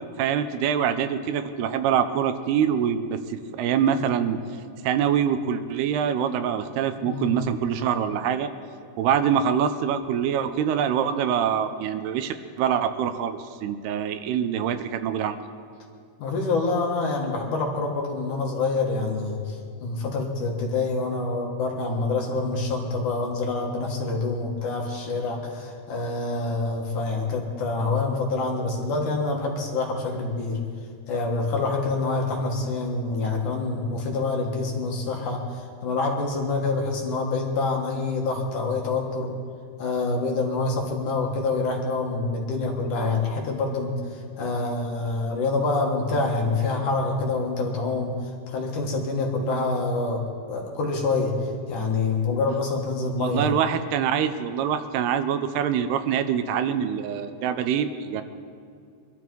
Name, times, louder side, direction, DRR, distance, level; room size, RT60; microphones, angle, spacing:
voice 1, 0.2-4.4 4.8-8.5 9.0-15.4 53.2-58.2, right 8 dB, 80° right, 10 dB, 2.8 m, -25 dB
voice 2, 7.0-7.5 16.2-30.6 31.1-39.3 39.8-48.1 48.5-50.2 50.5-51.3 51.7-53.5, left 3 dB, 60° left, 0 dB, 2.6 m, -26 dB
24.0 x 13.0 x 4.6 m, 2.3 s
omnidirectional pair, 4.6 m